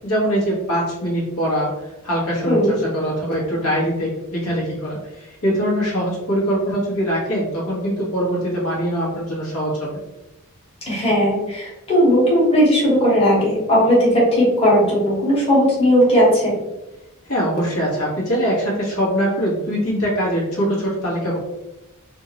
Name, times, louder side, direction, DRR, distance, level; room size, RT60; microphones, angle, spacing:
voice 1, 0.0-1.7 2.0-2.6 2.9-9.9 17.3-21.4, equal, 85° left, -5 dB, 1.4 m, -22 dB
voice 2, 2.5-2.8 10.9-16.5, equal, 25° left, -6 dB, 1.3 m, -16 dB
3.6 x 2.6 x 2.9 m, 0.96 s
head